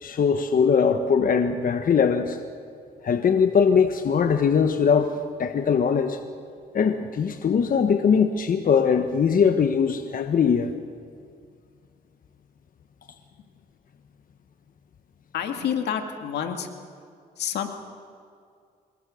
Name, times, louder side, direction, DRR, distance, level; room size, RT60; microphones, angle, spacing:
voice 1, 0.0-2.4 3.0-6.2 6.7-10.7, left 6 dB, 55° left, 8 dB, 1.2 m, -21 dB
voice 2, 15.3-16.7 17.4-17.7, left 8 dB, 85° left, 5 dB, 2.2 m, -28 dB
26.0 x 21.0 x 6.5 m, 2.2 s
cardioid pair, 75°, 17 cm